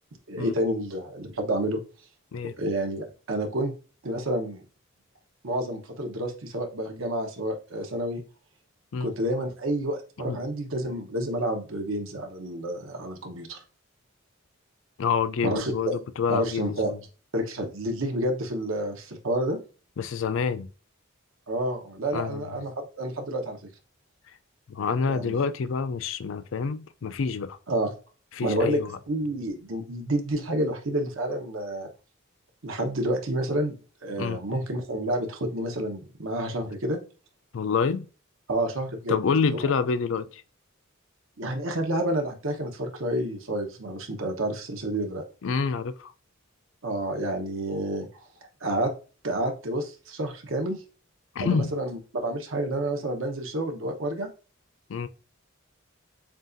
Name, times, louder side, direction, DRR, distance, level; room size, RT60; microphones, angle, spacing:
voice 1, 0.3-1.8 2.6-3.7 4.0-4.6 5.4-8.2 9.0-13.6 15.4-16.0 16.3-16.9 17.3-19.6 21.5-23.6 25.0-25.4 27.7-27.9 28.4-31.9 32.6-33.8 34.0-37.0 38.5-39.7 41.4-45.2 46.8-48.1 48.6-48.9 49.2-50.8 51.4-54.3, right 1 dB, 70° right, 1.1 m, -29 dB
voice 2, 15.0-17.0 20.0-20.7 22.1-22.5 24.7-27.6 28.3-28.9 34.2-34.4 37.5-38.1 39.1-40.4 45.4-46.1 51.4-51.7 54.9-55.1, left 5 dB, 65° left, 0.4 m, -27 dB
7.3 x 2.5 x 2.6 m
head